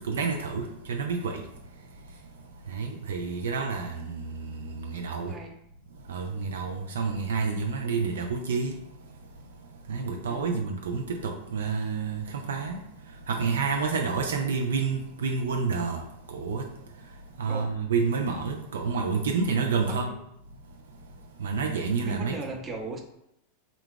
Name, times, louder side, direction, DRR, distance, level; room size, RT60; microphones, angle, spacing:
voice 1, 0.1-1.4 2.7-5.3 6.1-8.7 9.9-12.7 13.3-16.0 16.3-16.6 17.4-20.1 21.4-22.3, right 5 dB, 65° right, 2 dB, 0.4 m, -29 dB
voice 2, 5.2-5.5 10.2-10.6 17.5-17.8 19.9-20.0 22.0-23.0, right 3 dB, 20° right, 2 dB, 0.7 m, -37 dB
3.7 x 2.2 x 3.7 m, 0.78 s
figure-of-eight pair, 90°, 0 cm